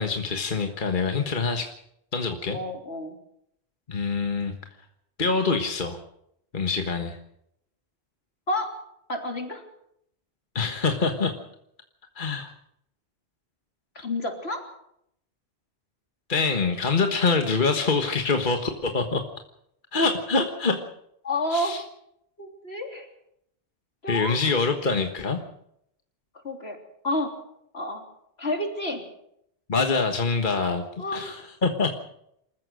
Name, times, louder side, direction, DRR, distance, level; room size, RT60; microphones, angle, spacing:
voice 1, 0.0-1.7 2.1-2.6 3.9-4.5 5.2-6.0 6.5-7.2 10.5-11.3 12.1-12.5 16.3-19.2 19.9-20.8 21.5-21.8 24.1-25.4 29.7-30.8 31.1-31.4 31.6-32.0, left 4 dB, 50° left, 5 dB, 1.6 m, -25 dB
voice 2, 2.5-3.2 8.5-8.7 9.1-9.6 14.0-14.6 21.2-21.8 22.4-23.1 24.0-24.4 26.4-26.8 27.0-27.4 27.7-28.0 28.4-29.1 31.0-31.4, left 1 dB, 75° left, 3 dB, 3.6 m, -29 dB
27.0 x 15.0 x 6.4 m, 0.75 s
omnidirectional pair, 1.1 m